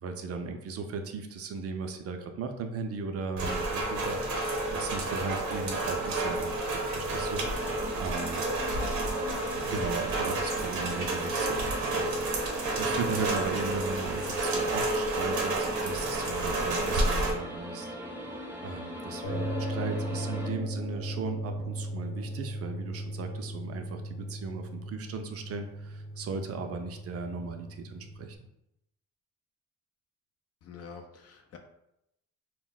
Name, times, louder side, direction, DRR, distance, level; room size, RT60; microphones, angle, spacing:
voice 1, 0.0-4.2 4.7-7.7 8.0-8.4 9.6-18.0 18.6-28.4, right 4 dB, 50° right, 6 dB, 0.5 m, -37 dB
Rain, 3.4-17.3, right 2 dB, 70° right, 0.8 m, -30 dB
sound 1, 7.4-20.5, equal, 5° right, 0.6 m, -41 dB
sound 2, 19.2-28.4, equal, 80° left, 0.8 m, -37 dB
voice 2, 30.6-31.6, left 6 dB, 55° left, 4 dB, 0.4 m, -46 dB
2.2 x 2.1 x 3.8 m, 0.83 s
cardioid pair, 90°, 30 cm